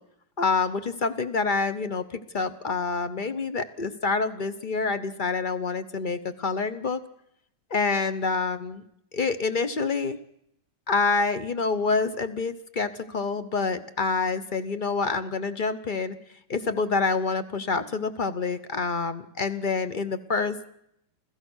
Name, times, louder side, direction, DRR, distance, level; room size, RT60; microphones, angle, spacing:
voice 1, 0.4-7.0 7.7-8.8 9.1-10.2 10.9-16.2 16.5-20.6, left 4 dB, 40° left, 11 dB, 0.7 m, -27 dB
29.0 x 15.0 x 6.4 m, 0.76 s
omnidirectional pair, 2.2 m